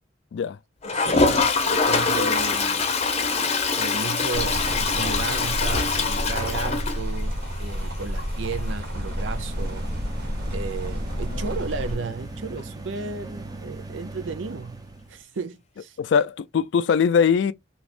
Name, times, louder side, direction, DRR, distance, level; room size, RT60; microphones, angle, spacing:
Toilet flush, 0.8-7.5 7.9-8.0 8.2-8.3 8.5-8.6 11.2-11.3 12.6-12.7, left 4 dB, 35° left, 0.7 m, -24 dB
voice 1, 0.8-2.9 3.8-9.9 10.5-14.8 15.1-16.0, right 4 dB, 85° right, 0.5 m, -34 dB
sound 1, 4.3-12.0, equal, 55° right, 1.2 m, -30 dB
sound 2, 8.6-15.2, right 2 dB, 20° right, 0.5 m, -39 dB
voice 2, 16.0-17.5, left 6 dB, 65° left, 0.3 m, -21 dB
3.4 x 2.9 x 2.4 m
head